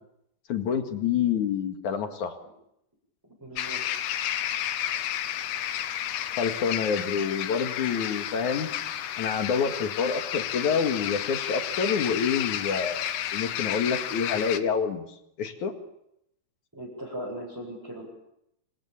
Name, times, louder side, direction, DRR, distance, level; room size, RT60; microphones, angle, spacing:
voice 1, 0.5-2.4 6.4-8.7 9.2-13.1 13.3-15.1 15.4-15.7, left 6 dB, 55° left, 6 dB, 2.9 m, -27 dB
voice 2, 3.2-3.8 16.7-18.0, equal, 5° right, -4 dB, 7.6 m, -38 dB
sound 1, 3.6-14.6, left 11 dB, 75° left, 3.3 m, -31 dB
29.5 x 27.0 x 7.3 m, 0.81 s
omnidirectional pair, 4.9 m